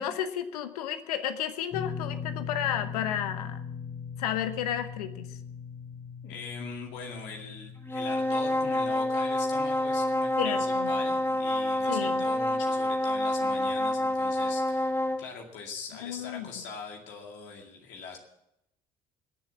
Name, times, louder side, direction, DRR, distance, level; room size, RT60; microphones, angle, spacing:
voice 1, 0.0-3.6 4.2-5.3 10.4-10.9 11.9-12.3 16.0-16.6, left 10 dB, 85° left, 11 dB, 0.9 m, -32 dB
sound 1, 1.7-14.0 14.2-14.5 16.1-16.2, left 6 dB, 45° left, 0.9 m, -42 dB
voice 2, 6.2-18.2, left 5 dB, 70° left, 1 dB, 2.3 m, -42 dB
sound 2, 7.9-15.3, left 1 dB, 10° left, 1.2 m, -27 dB
21.0 x 7.4 x 7.3 m, 0.83 s
hypercardioid pair, 55°, 19 cm